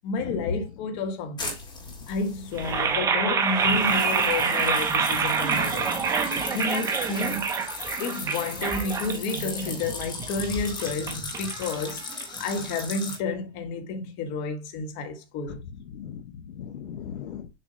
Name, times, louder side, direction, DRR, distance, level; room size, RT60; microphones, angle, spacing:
voice 1, 0.0-1.5 2.1-5.9 6.5-7.4 8.0-12.0 12.4-15.6, left 3 dB, 35° left, 1.5 m, -30 dB
sound 1, 1.4-3.0 3.5-13.2, left 3 dB, 15° left, 1.3 m, -37 dB
sound 2, 2.5-12.6, right 5 dB, 10° right, 0.4 m, -27 dB
voice 2, 3.7-4.0 5.1-5.3 15.5-15.6 15.9-17.5, left 9 dB, 90° left, 0.9 m, -38 dB
6.9 x 2.8 x 5.0 m
supercardioid pair, 150°, 32 cm